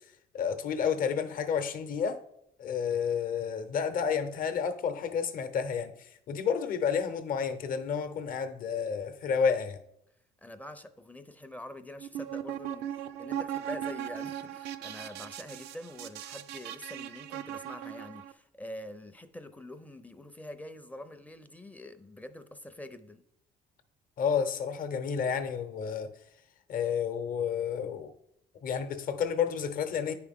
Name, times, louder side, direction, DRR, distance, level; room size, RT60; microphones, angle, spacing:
voice 1, 0.3-2.2 2.6-9.8 24.2-26.1 26.7-28.1 28.6-30.1, left 7 dB, 55° left, 0.8 m, -30 dB
voice 2, 10.4-23.2, left 1 dB, 10° left, 0.5 m, -45 dB
sound 1, 12.0-18.3, right 11 dB, 80° right, 0.4 m, -38 dB
9.5 x 4.7 x 3.6 m
cardioid pair, 110°, 17 cm